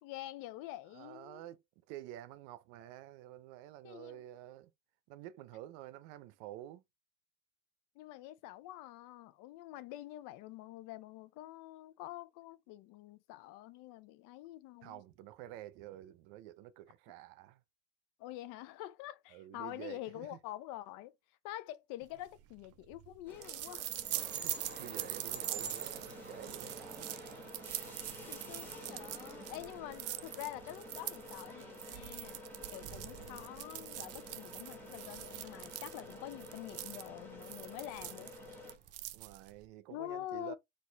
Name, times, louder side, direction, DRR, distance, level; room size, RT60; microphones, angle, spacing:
voice 1, 0.0-1.4 3.8-4.2 8.0-15.0 18.2-21.1 21.4-24.0 28.3-32.4 32.7-38.3 39.9-40.6, left 14 dB, 65° left, 0.7 m, -46 dB
voice 2, 0.9-1.6 1.9-4.7 5.1-6.8 14.8-17.6 19.3-20.4 24.3-27.3 27.8-28.3 33.1-33.5 39.1-40.6, right 13 dB, 75° right, 0.7 m, -50 dB
sound 1, 22.2-39.7, right 15 dB, 45° right, 0.5 m, -44 dB
sound 2, 23.3-38.8, equal, 5° left, 1.7 m, -50 dB
sound 3, 24.1-39.1, right 5 dB, 30° right, 1.8 m, -58 dB
4.2 x 2.6 x 3.9 m
supercardioid pair, 115°, 35 cm